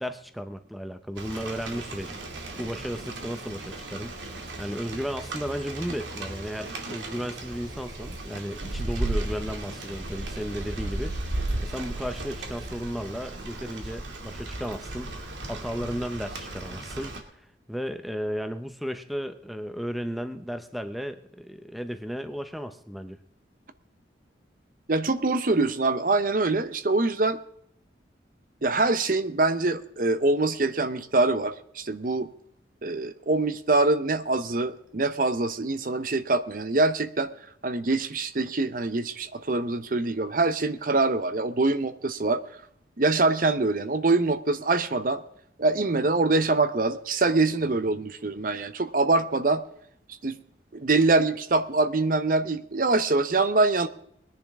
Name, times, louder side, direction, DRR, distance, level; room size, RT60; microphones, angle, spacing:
voice 1, 0.0-2.2 2.6-17.2 17.7-23.2, equal, ahead, 8 dB, 0.7 m, -34 dB
Rain, 1.2-17.2, right 2 dB, 85° right, 2.3 m, -35 dB
voice 2, 24.9-27.4 28.6-32.3 32.8-37.3 37.6-42.4 43.0-45.2 45.6-49.6 50.2-50.3 50.7-53.9, right 3 dB, 50° right, 12 dB, 0.7 m, -24 dB
21.0 x 10.5 x 3.6 m, 0.72 s
head